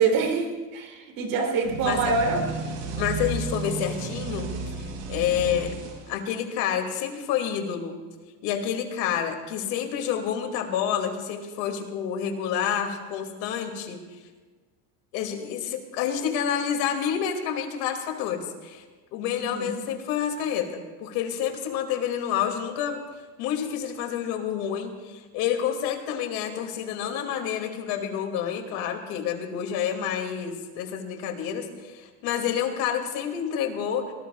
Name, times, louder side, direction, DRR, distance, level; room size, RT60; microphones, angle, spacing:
voice 1, 0.0-2.4 2.9-3.1 19.4-19.8, right 4 dB, 60° right, 3 dB, 3.4 m, -25 dB
sound 1, 1.6-6.5, right 3 dB, 90° right, 5.3 m, -33 dB
voice 2, 3.0-4.5 4.8-5.7 6.1-8.0 8.4-14.0 15.1-18.8 19.1-23.0 23.4-34.1, left 8 dB, 80° left, 4 dB, 2.5 m, -28 dB
25.5 x 19.5 x 2.4 m, 1.4 s
cardioid pair, 150°, 36 cm